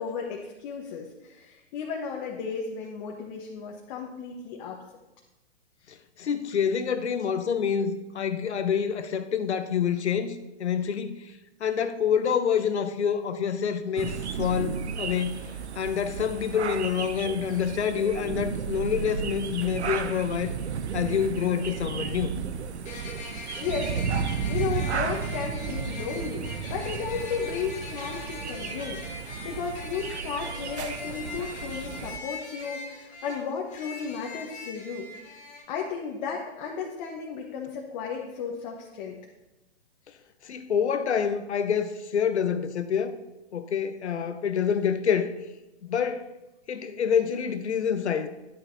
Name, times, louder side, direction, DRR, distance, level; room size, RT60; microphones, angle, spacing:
voice 1, 0.0-4.8 23.6-24.0 24.5-29.0 29.4-35.3 35.7-39.2, left 6 dB, 45° left, 1.4 m, -34 dB
voice 2, 5.9-11.3 11.6-20.6 20.9-22.4 40.4-43.1 43.5-45.3 45.8-46.3 46.7-48.3, left 7 dB, 85° left, 0.9 m, -27 dB
sound 1, 14.0-32.2, right 7 dB, 85° right, 0.7 m, -33 dB
sound 2, 22.8-35.6, left 4 dB, 25° left, 1.6 m, -42 dB
10.5 x 9.2 x 2.8 m
hypercardioid pair, 125°, 33 cm